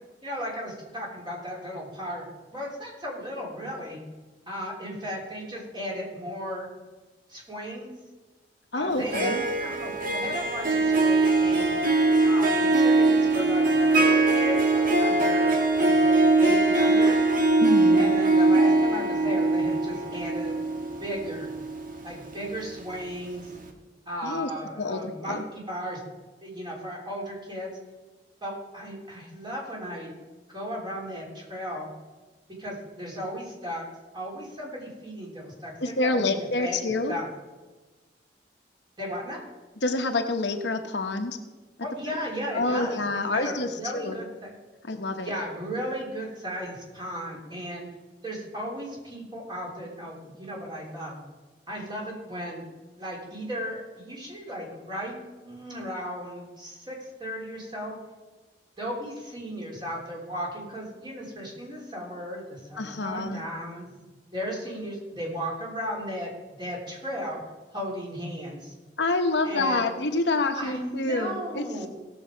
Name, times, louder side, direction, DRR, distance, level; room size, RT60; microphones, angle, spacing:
voice 1, 0.2-2.3 2.5-4.0 4.5-6.7 7.3-8.0 8.7-11.7 12.2-17.2 18.0-20.5 20.8-21.5 22.0-23.5 24.1-26.0 26.4-27.7 28.4-30.1 30.5-31.9 32.6-33.8 34.1-36.8 37.1-37.3 39.0-39.4 41.8-44.5 45.2-47.9 48.2-51.2 51.7-52.6 53.0-58.0 58.8-63.9 64.3-66.3 66.6-67.4 67.7-68.7 69.4-69.8 70.6-71.9, equal, 25° right, -3 dB, 3.6 m, -35 dB
voice 2, 8.7-9.4 17.6-18.1 24.2-24.5 24.8-25.0 25.3-25.4 35.8-37.2 39.8-41.4 42.1-42.2 42.5-44.2 44.8-45.4 62.8-63.4 69.0-71.6, left 2 dB, 70° left, 6 dB, 1.0 m, -27 dB
Harp, 8.9-22.9, right 2 dB, 50° right, 1.4 m, -22 dB
17.0 x 7.0 x 5.1 m, 1.2 s
head